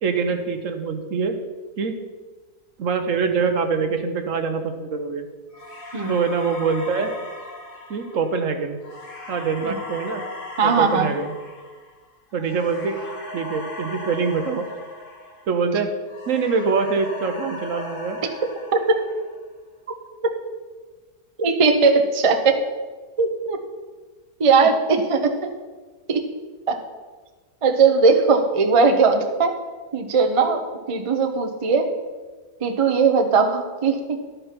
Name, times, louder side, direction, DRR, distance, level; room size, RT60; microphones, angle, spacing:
voice 1, 0.0-1.4 1.8-1.9 2.8-5.3 6.1-7.1 7.9-8.8 9.3-10.2 10.6-11.3 12.3-13.0 13.3-14.7 15.5-15.9 16.3-18.2, right 5 dB, 60° right, 7 dB, 1.1 m, -24 dB
sound 1, 5.5-15.7 16.1-19.5, left 2 dB, 35° left, 1.6 m, -38 dB
voice 2, 10.6-11.1 18.9-19.0 21.4-22.6 23.2-23.6 24.4-25.5 26.1-26.2 26.7-26.8 27.6-29.5 29.9-30.6 30.9-31.9 32.6-34.0, right 4 dB, 35° right, 4 dB, 0.5 m, -18 dB
12.0 x 5.4 x 5.8 m, 1.3 s
omnidirectional pair, 1.7 m